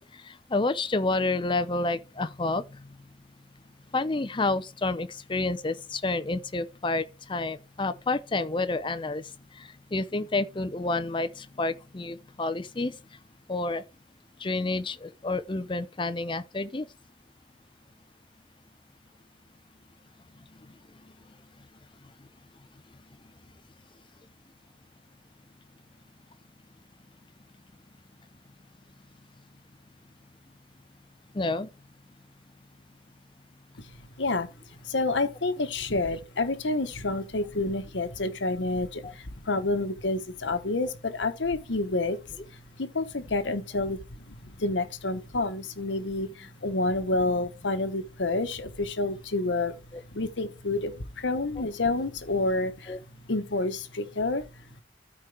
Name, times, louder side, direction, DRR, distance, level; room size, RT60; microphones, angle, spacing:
voice 1, 0.0-3.0 3.9-13.0 13.5-13.8 14.4-16.9 20.4-20.7 31.3-31.7 39.0-39.1 52.9-53.0, left 2 dB, 25° left, 0.6 m, -29 dB
voice 2, 33.8-42.2 42.5-49.8 50.1-54.8, left 2 dB, 80° left, 1.1 m, -29 dB
13.5 x 4.5 x 3.4 m
head